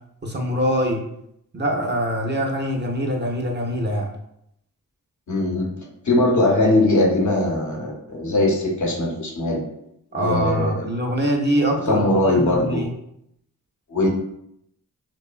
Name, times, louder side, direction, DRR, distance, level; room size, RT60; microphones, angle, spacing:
voice 1, 0.2-1.0 1.5-4.1 10.1-12.9, equal, 30° right, 1 dB, 0.5 m, -23 dB
voice 2, 5.3-9.6 10.1-10.9 11.9-12.8 13.9-14.1, left 1 dB, 55° left, 0 dB, 0.8 m, -20 dB
2.8 x 2.1 x 2.3 m, 0.76 s
cardioid pair, 55°, 34 cm